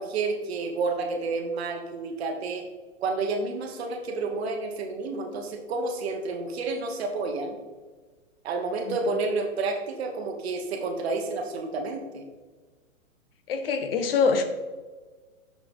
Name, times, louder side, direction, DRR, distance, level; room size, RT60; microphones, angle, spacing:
voice 1, 0.0-2.7 3.0-7.6 8.4-12.2, right 3 dB, 50° right, 5 dB, 1.2 m, -30 dB
voice 2, 13.5-14.4, left 5 dB, 45° left, 8 dB, 0.7 m, -24 dB
6.6 x 5.8 x 3.6 m, 1.3 s
hypercardioid pair, 165°, 40 cm